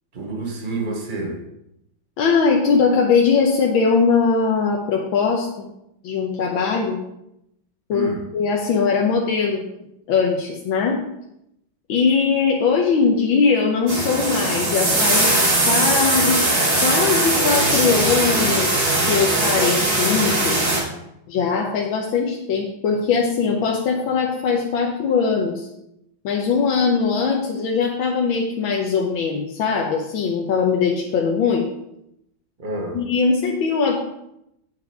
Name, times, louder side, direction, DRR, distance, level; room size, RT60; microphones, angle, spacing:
voice 1, 0.1-1.4 7.9-8.3 32.6-33.0, right 2 dB, 25° right, 2 dB, 1.4 m, -28 dB
voice 2, 2.2-5.6 6.0-7.0 7.9-9.6 10.1-11.0 11.9-15.3 15.7-16.5 16.8-20.6 21.3-25.7 26.2-31.7 32.9-34.0, left 5 dB, 80° left, -1 dB, 1.7 m, -20 dB
sound 1, 13.9-20.8, right 2 dB, 75° right, 3.8 m, -20 dB
8.3 x 6.7 x 4.8 m, 0.81 s
omnidirectional pair, 2.2 m